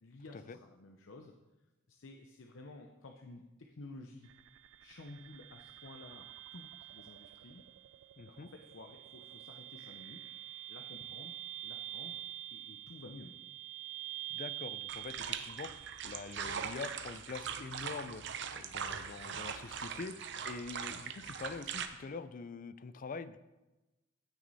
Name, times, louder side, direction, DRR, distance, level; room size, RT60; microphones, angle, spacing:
voice 1, 0.0-4.3 4.8-7.6 8.2-10.2 10.7-11.4 11.6-12.2 12.5-13.3, left 2 dB, 75° left, 3 dB, 0.7 m, -53 dB
sound 1, 4.2-17.2, right 14 dB, 85° right, 0.3 m, -47 dB
voice 2, 8.2-8.5 14.3-15.7 16.0-18.2 18.5-20.2 20.4-23.4, left 4 dB, 45° left, 15 dB, 0.4 m, -44 dB
sound 2, 14.9-21.9, right 7 dB, 65° right, 0.7 m, -41 dB
15.5 x 6.2 x 4.1 m, 1.1 s
head